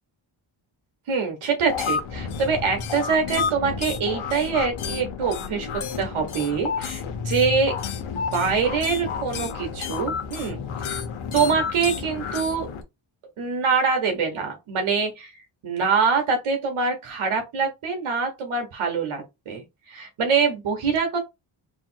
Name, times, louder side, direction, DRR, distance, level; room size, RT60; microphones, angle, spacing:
voice 1, 1.1-5.7 6.0-7.7 8.1-11.0 11.3-12.7 13.4-15.3 15.6-21.2, right 5 dB, 85° right, 1.5 m, -24 dB
sound 1, 1.7-12.8, left 6 dB, 80° left, 1.0 m, -30 dB
3.5 x 2.5 x 4.5 m
cardioid pair, 75°, 48 cm